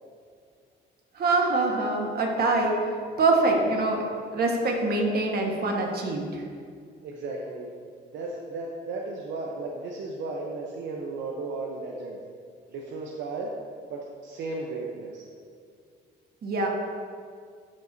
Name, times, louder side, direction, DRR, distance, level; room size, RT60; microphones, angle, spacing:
voice 1, 1.2-4.0 4.3-6.4 16.4-16.7, right 2 dB, 55° right, 1 dB, 1.3 m, -24 dB
voice 2, 7.0-7.7 8.1-12.2 12.7-13.5 13.9-15.2, right 3 dB, 80° right, -1 dB, 0.8 m, -35 dB
12.0 x 5.3 x 2.6 m, 2.2 s
cardioid pair, 100°, 19 cm